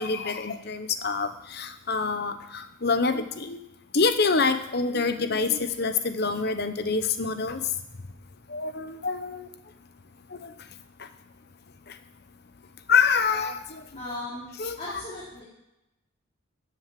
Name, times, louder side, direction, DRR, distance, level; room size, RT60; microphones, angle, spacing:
voice 1, 0.0-3.6 3.9-7.6 8.5-9.5 10.4-10.5 12.9-13.8 14.6-14.8, left 4 dB, 50° left, 10 dB, 0.9 m, -26 dB
voice 2, 13.9-14.5 14.8-15.4, left 1 dB, 30° left, -7 dB, 3.3 m, -37 dB
13.0 x 6.8 x 7.6 m, 0.91 s
head